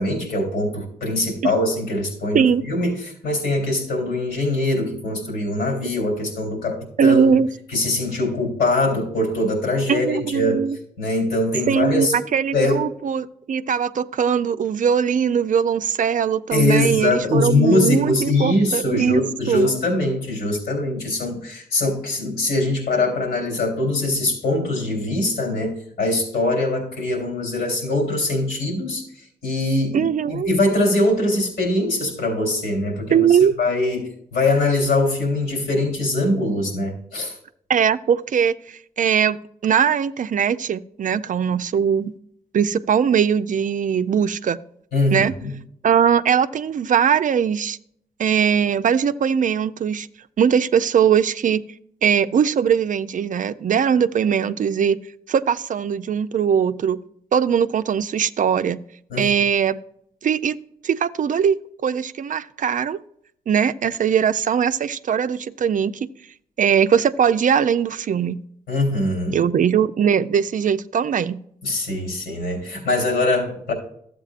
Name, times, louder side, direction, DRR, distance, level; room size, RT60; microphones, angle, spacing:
voice 1, 0.0-7.3 7.7-10.6 11.0-12.1 12.5-12.8 16.5-29.0 29.4-37.3 44.9-45.5 59.1-59.3 68.7-69.4 71.6-73.7, left 2 dB, 85° left, 1 dB, 3.5 m, -22 dB
voice 2, 7.0-7.5 9.9-10.8 11.7-19.2 19.5-19.7 29.9-30.5 33.1-33.5 37.7-42.1 42.5-44.6 45.1-45.3 45.8-47.8 48.2-50.1 50.4-51.6 52.0-55.0 55.3-57.0 57.3-58.8 59.2-59.8 60.2-60.6 60.8-61.6 61.8-63.0 63.5-66.0 66.6-68.4 69.3-71.4, right 7 dB, 55° right, 12 dB, 0.5 m, -20 dB
13.0 x 7.9 x 2.5 m, 0.68 s
supercardioid pair, 55°, 16 cm